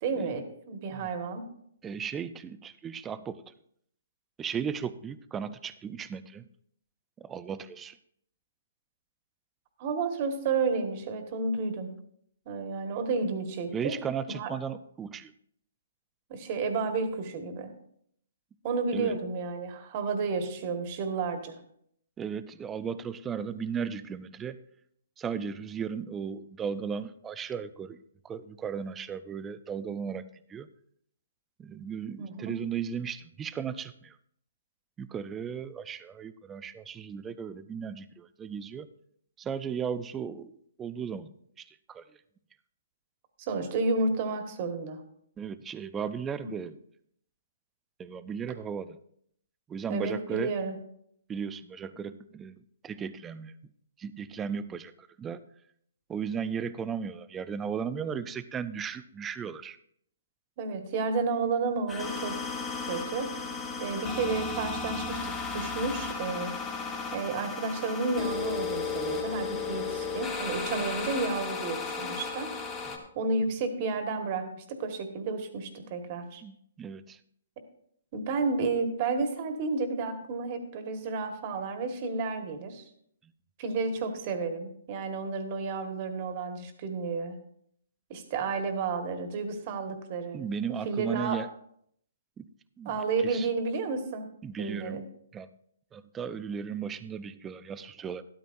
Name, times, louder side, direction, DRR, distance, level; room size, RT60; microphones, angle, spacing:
voice 1, 0.0-1.4 9.8-11.9 12.4-13.9 14.3-14.5 16.3-17.7 18.6-21.6 32.2-32.5 43.4-45.0 46.4-46.5 49.9-50.7 60.6-62.3 62.9-63.3 63.8-66.5 67.1-72.6 73.1-76.4 78.1-82.8 83.6-87.4 88.1-90.5 90.8-91.4 92.8-94.3 94.6-95.0, right 4 dB, 35° right, 6 dB, 1.5 m, -31 dB
voice 2, 1.8-3.4 4.4-6.4 7.2-8.0 13.7-15.3 18.9-19.2 22.2-24.6 25.2-28.0 28.2-30.2 30.5-30.7 31.6-34.2 35.0-38.9 39.4-42.1 45.4-46.8 48.0-49.0 49.7-50.5 51.3-53.6 54.0-55.4 56.1-59.8 70.9-71.0 76.4-77.2 83.2-83.3 90.3-91.5 92.4-92.5 92.8-92.9 93.2-93.5 94.4-95.1 95.3-95.5 95.9-98.2, right 7 dB, 10° right, 14 dB, 0.4 m, -36 dB
sound 1, 61.9-73.0, left 4 dB, 15° left, 1.2 m, -34 dB
12.5 x 12.5 x 2.6 m, 0.68 s
hypercardioid pair, 160°, 0 cm